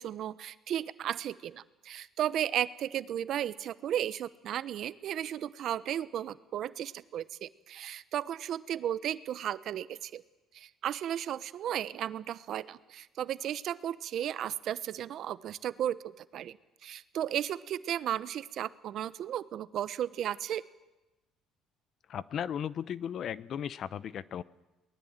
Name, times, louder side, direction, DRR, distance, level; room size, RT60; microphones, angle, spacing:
voice 1, 0.0-10.2 10.5-16.6 16.8-20.6, right 10 dB, 60° right, 16 dB, 1.0 m, -34 dB
voice 2, 22.1-24.4, left 9 dB, 55° left, 19 dB, 0.8 m, -36 dB
22.5 x 19.5 x 9.0 m, 1.0 s
cardioid pair, 110°, 0 cm